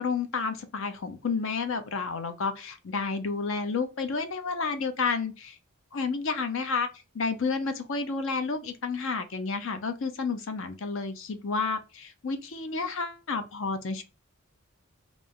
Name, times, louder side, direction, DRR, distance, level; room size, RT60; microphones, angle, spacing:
voice 1, 0.0-5.6 5.9-6.9 7.1-14.0, left 4 dB, 65° left, 0.6 m, -30 dB
3.3 x 2.5 x 3.6 m
head